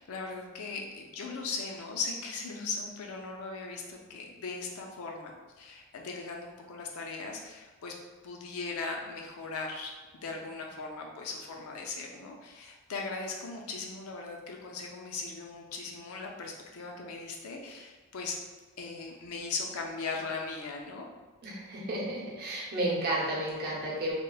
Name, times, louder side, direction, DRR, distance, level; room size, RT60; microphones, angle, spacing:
voice 1, 0.0-7.9 8.2-18.4 18.8-21.1, left 4 dB, 70° left, 1 dB, 0.4 m, -38 dB
voice 2, 21.4-24.1, right 1 dB, 45° right, -6 dB, 0.7 m, -32 dB
2.9 x 2.0 x 2.2 m, 1.3 s
head